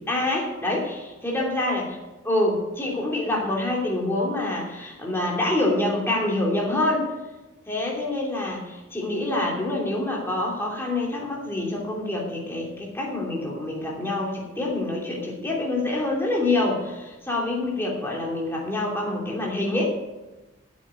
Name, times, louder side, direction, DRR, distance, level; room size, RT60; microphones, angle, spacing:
voice 1, 0.1-2.0 2.2-7.1 7.7-19.8, left 2 dB, 10° left, -2 dB, 3.0 m, -26 dB
9.0 x 8.4 x 9.5 m, 1.1 s
head